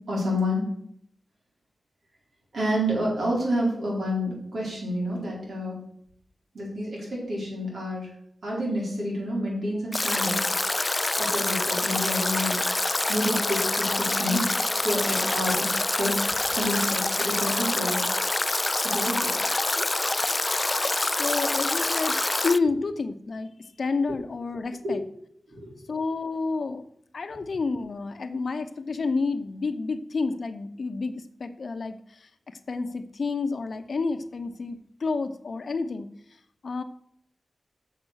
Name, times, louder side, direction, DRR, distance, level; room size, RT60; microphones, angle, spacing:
voice 1, 0.1-0.7 2.5-5.8 6.5-8.1 8.4-10.4 11.2-14.4 14.8-18.0 18.8-19.3 24.8-25.0 25.5-25.7, equal, 75° right, -4 dB, 4.8 m, -29 dB
Stream / Drip / Trickle dribble, 9.9-22.6, left 2 dB, 30° left, 0.3 m, -26 dB
voice 2, 21.2-25.0 25.9-26.9 27.1-36.1 36.6-36.8, left 4 dB, 70° left, 10 dB, 0.8 m, -30 dB
7.7 x 6.6 x 6.3 m, 0.68 s
cardioid pair, 55°, 0 cm